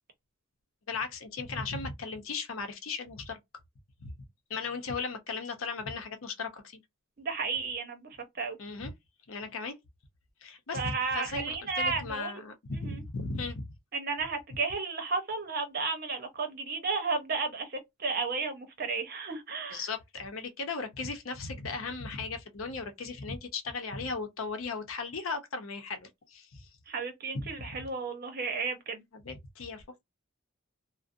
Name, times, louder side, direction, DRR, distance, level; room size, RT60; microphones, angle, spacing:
voice 1, 0.9-3.4 4.0-4.1 4.5-6.8 8.6-8.9 9.3-9.8 10.4-13.7 19.7-26.7 27.3-27.8 29.1-30.0, left 4 dB, 85° left, 0.7 m, -37 dB
voice 2, 7.2-8.6 10.7-12.4 12.7-13.0 13.9-19.8 26.9-29.0, right 4 dB, 50° right, 0.8 m, -33 dB
2.5 x 2.1 x 2.5 m
head